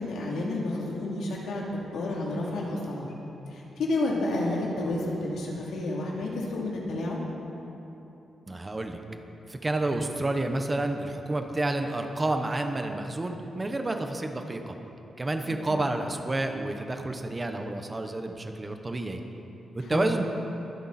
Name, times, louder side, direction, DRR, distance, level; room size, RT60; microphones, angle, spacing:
voice 1, 0.0-1.6 1.9-3.1 3.5-7.2 15.5-15.7 19.8-20.1, left 2 dB, 85° left, -3 dB, 2.9 m, -30 dB
voice 2, 8.5-9.0 9.5-14.7 15.2-19.2 19.7-20.3, right 2 dB, 15° right, 5 dB, 0.9 m, -30 dB
23.5 x 10.5 x 4.2 m, 2.9 s
wide cardioid pair, 175°, 0 cm